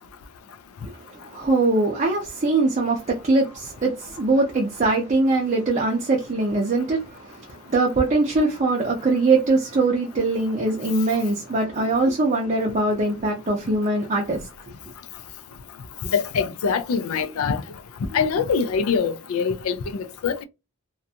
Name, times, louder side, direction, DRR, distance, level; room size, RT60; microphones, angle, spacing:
voice 1, 0.8-14.5, right 2 dB, 35° right, 0.5 m, -22 dB
voice 2, 16.0-17.6 18.1-20.4, left 6 dB, 75° left, 0.4 m, -24 dB
2.5 x 2.2 x 2.7 m
head